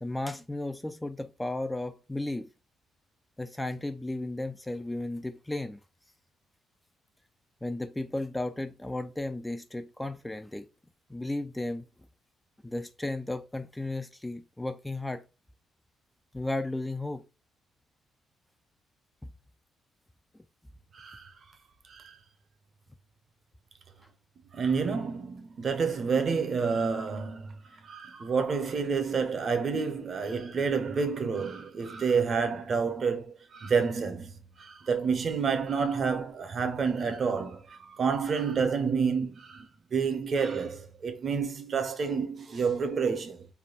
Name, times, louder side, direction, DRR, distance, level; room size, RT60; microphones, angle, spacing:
voice 1, 0.0-2.5 3.4-5.8 7.6-10.7 11.1-11.8 12.6-15.2 16.3-17.2, left 2 dB, 10° left, 0.3 m, -34 dB
voice 2, 20.9-21.3 21.9-22.2 24.5-43.5, right 5 dB, 50° right, 0.8 m, -29 dB
3.4 x 2.2 x 3.9 m
cardioid pair, 90°, 0 cm